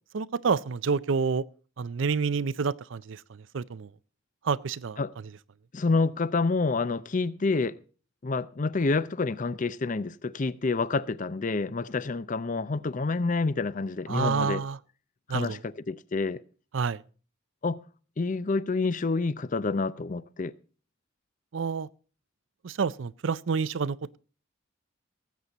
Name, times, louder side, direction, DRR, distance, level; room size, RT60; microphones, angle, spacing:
voice 1, 0.1-1.4 1.8-3.2 3.5-3.9 4.4-5.0 14.1-14.8 15.3-15.6 16.7-17.0 21.5-21.9 22.6-24.2, right 5 dB, 65° right, 0.5 m, -28 dB
voice 2, 5.7-7.8 8.2-14.6 15.3-16.4 17.6-17.8 18.2-20.5, left 3 dB, 40° left, 0.5 m, -28 dB
18.5 x 8.2 x 4.0 m
head